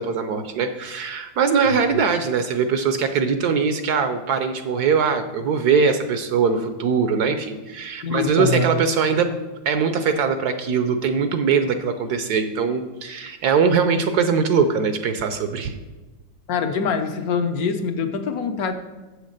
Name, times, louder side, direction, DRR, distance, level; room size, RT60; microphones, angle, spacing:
voice 1, 0.0-9.3 9.7-15.8, right 5 dB, 70° right, 9 dB, 1.0 m, -21 dB
voice 2, 8.0-8.7 16.5-18.7, left 5 dB, 60° left, 8 dB, 1.0 m, -24 dB
7.8 x 6.5 x 6.4 m, 1.2 s
omnidirectional pair, 2.1 m